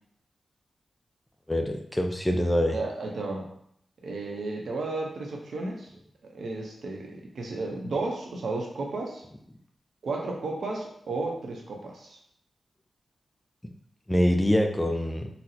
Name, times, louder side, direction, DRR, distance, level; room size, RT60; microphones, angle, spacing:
voice 1, 1.5-2.8 14.1-15.3, equal, 10° left, 4 dB, 0.3 m, -24 dB
voice 2, 2.7-3.5 4.0-5.9 6.3-9.2 10.0-12.2, right 3 dB, 75° right, 0 dB, 0.6 m, -33 dB
4.0 x 2.0 x 2.7 m, 0.70 s
wide cardioid pair, 115°, 0 cm